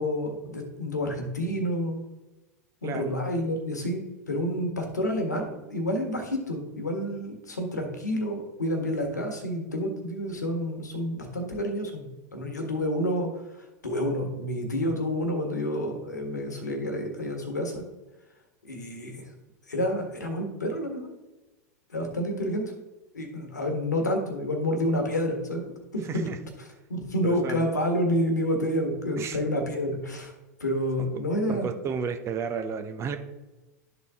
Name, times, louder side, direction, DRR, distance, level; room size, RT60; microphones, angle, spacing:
voice 1, 0.0-2.0 2.8-13.3 13.6-17.8 18.6-19.3 19.7-21.1 21.9-22.7 23.1-26.3 26.6-30.3 30.6-31.7, equal, 90° left, 4 dB, 1.5 m, -29 dB
voice 2, 26.0-26.4 27.2-27.7 29.2-29.4 31.5-33.2, right 6 dB, 30° right, 7 dB, 0.9 m, -32 dB
12.0 x 4.1 x 3.6 m, 1.1 s
hypercardioid pair, 95°, 9 cm